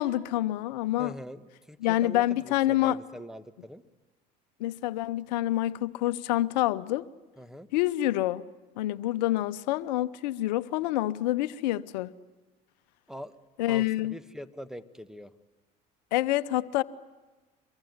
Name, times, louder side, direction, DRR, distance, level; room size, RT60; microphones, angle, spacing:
voice 1, 0.0-1.1 1.8-3.0 4.6-7.0 7.7-8.4 8.8-12.1 13.6-14.1 16.1-16.8, left 15 dB, 80° left, 0.9 m, -27 dB
voice 2, 1.0-3.8 7.4-7.7 13.1-13.3 13.7-15.3, equal, ahead, 1.6 m, -43 dB
25.0 x 22.5 x 9.6 m
hypercardioid pair, 80°, 21 cm